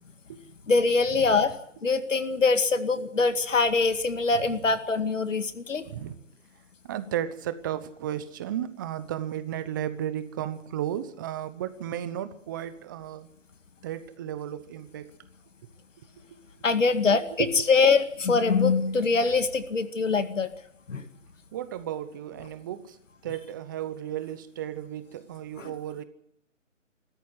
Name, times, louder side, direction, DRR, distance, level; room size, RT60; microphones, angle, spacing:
voice 1, 0.7-1.5 1.8-5.9 16.6-20.5 20.9-21.0 25.6-25.7, left 4 dB, 70° left, 9 dB, 2.2 m, -23 dB
voice 2, 5.9-6.2 6.8-13.3 13.8-15.1 16.3-16.4 17.4-17.6 21.5-23.0 23.2-26.0, right 10 dB, 15° right, 13 dB, 0.9 m, -34 dB
25.0 x 14.0 x 9.5 m, 0.72 s
hypercardioid pair, 155°, 39 cm